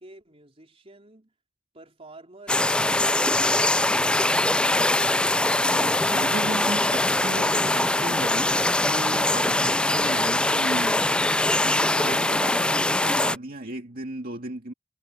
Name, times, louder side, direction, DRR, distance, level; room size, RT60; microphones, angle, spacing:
voice 1, 0.0-1.3 1.7-4.8, right 2 dB, 30° right, 4.0 m, -49 dB
sound 1, 2.5-13.4, left 2 dB, 5° left, 0.3 m, -22 dB
voice 2, 5.5-14.7, right 2 dB, 50° right, 2.1 m, -36 dB
head